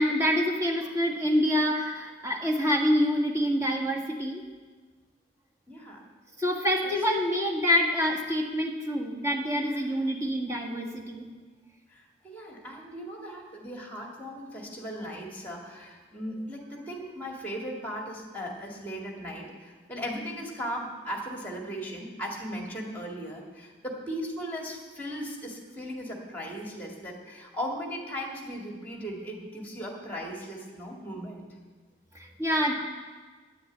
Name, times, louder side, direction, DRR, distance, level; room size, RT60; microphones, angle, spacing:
voice 1, 0.0-4.4 6.4-11.2 32.1-32.7, equal, 15° right, 0 dB, 1.6 m, -26 dB
voice 2, 5.7-6.0 11.9-31.5, equal, 10° left, 0 dB, 2.2 m, -37 dB
9.9 x 9.6 x 8.5 m, 1.4 s
head